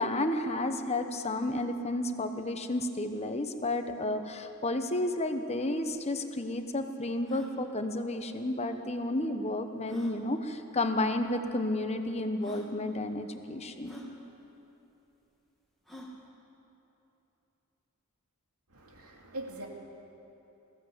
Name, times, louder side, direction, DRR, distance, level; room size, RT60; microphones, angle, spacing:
voice 1, 0.0-14.0, left 1 dB, 30° left, 7 dB, 1.1 m, -31 dB
sound 1, 5.7-5.8 5.9-6.0 6.6-6.7 7.2-7.5 8.9-9.0 9.8-10.2 11.2-11.3 12.0-12.1 12.4-12.7 13.8-14.1 15.9-16.2, left 1 dB, ahead, 2.5 m, -48 dB
voice 2, 18.7-19.7, right 1 dB, 85° right, 0 dB, 2.8 m, -42 dB
21.0 x 15.5 x 8.1 m, 3.0 s
head